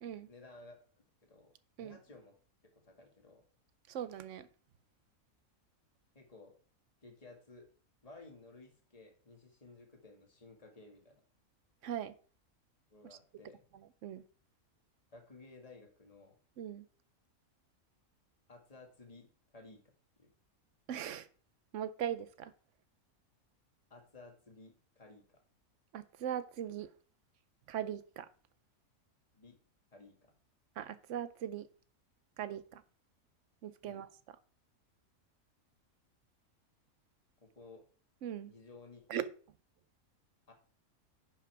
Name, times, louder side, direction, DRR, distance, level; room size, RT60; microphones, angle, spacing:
voice 1, 0.3-1.5 1.8-2.3 2.7-3.4 6.1-6.6 7.0-7.7 8.0-11.2 12.9-13.6 15.1-16.4 18.5-19.8 20.2-20.3 23.9-25.4 29.3-29.6 29.9-30.3 33.8-34.1 37.4-37.9 38.5-39.1 40.5-40.6, left 3 dB, 25° left, 2.1 m, -56 dB
voice 2, 3.9-4.5 11.8-12.1 14.0-14.2 16.6-16.8 20.9-21.3 21.7-22.5 25.9-26.9 27.7-28.3 30.8-31.7 32.4-32.8 33.6-34.1 38.2-38.5 39.1-39.3, right 10 dB, 65° right, 0.9 m, -39 dB
10.5 x 5.7 x 4.7 m
omnidirectional pair, 1.5 m